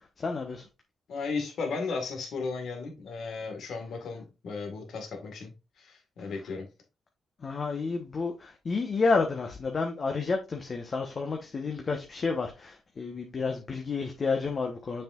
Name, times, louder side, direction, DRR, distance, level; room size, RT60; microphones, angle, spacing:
voice 1, 0.2-0.7 7.4-15.0, left 4 dB, 50° left, 1.2 m, -30 dB
voice 2, 1.1-5.5 5.8-6.7, left 4 dB, 70° left, 1.9 m, -35 dB
6.6 x 5.9 x 2.6 m
supercardioid pair, 60°, 0 cm